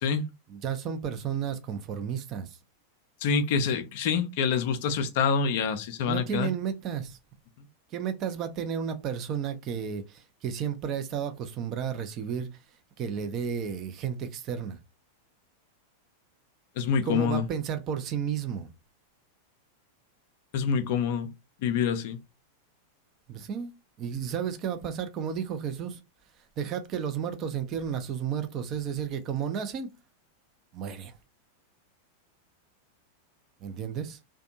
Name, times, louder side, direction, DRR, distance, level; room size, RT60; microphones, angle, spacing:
voice 1, 0.5-2.6 6.0-7.2 7.9-12.5 13.0-14.8 17.0-18.7 23.3-23.7 24.0-26.0 26.6-29.9 30.7-31.1 33.6-34.2, right 7 dB, 35° right, 0.5 m, -32 dB
voice 2, 3.2-6.5 16.8-17.4 20.5-21.3 21.6-22.2, left 6 dB, 50° left, 0.4 m, -26 dB
2.5 x 2.2 x 2.7 m
figure-of-eight pair, 90°, 0 cm